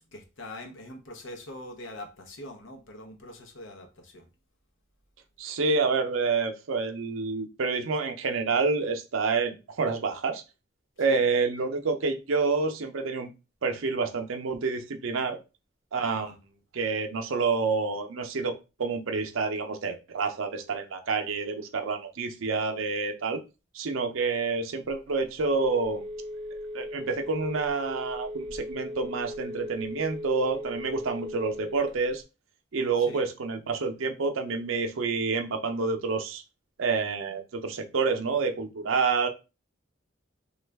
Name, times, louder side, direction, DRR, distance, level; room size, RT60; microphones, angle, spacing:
voice 1, 0.1-4.3 11.0-11.2 16.0-16.3 33.0-33.2, left 1 dB, 65° left, 0.8 m, -43 dB
voice 2, 5.4-10.4 11.0-13.3 13.6-15.4 15.9-16.3 16.7-18.5 18.8-23.4 23.7-26.0 26.7-32.2 32.7-36.4 36.8-39.3, right 4 dB, 75° right, 0.6 m, -28 dB
Telephone, 24.8-32.2, left 1 dB, 25° right, 0.6 m, -38 dB
3.1 x 2.4 x 3.4 m
head